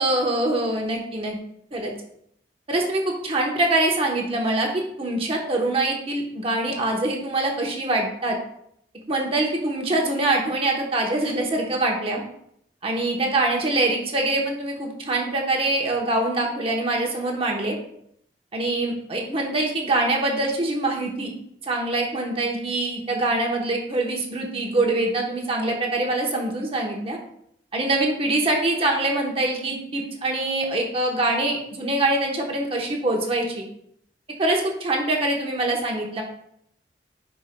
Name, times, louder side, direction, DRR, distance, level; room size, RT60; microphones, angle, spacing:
voice 1, 0.0-1.3 1.7-1.9 2.7-8.4 9.1-12.2 12.8-17.8 18.5-21.3 21.6-27.2 27.7-33.6 34.4-36.2, right 2 dB, 35° right, 0 dB, 1.0 m, -24 dB
9.6 x 4.9 x 2.2 m, 0.72 s
head